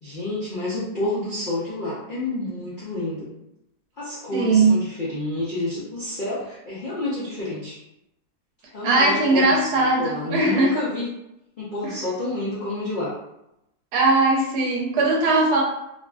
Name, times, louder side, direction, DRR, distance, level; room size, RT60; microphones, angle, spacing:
voice 1, 0.0-3.3 4.0-7.8 8.7-9.7 10.0-11.1 11.6-13.1, left 2 dB, 90° left, -8 dB, 0.4 m, -29 dB
voice 2, 4.3-4.8 8.8-10.8 11.8-11.9 13.9-15.6, right 3 dB, 75° right, -1 dB, 1.1 m, -19 dB
2.8 x 2.4 x 2.2 m, 0.84 s
omnidirectional pair, 1.8 m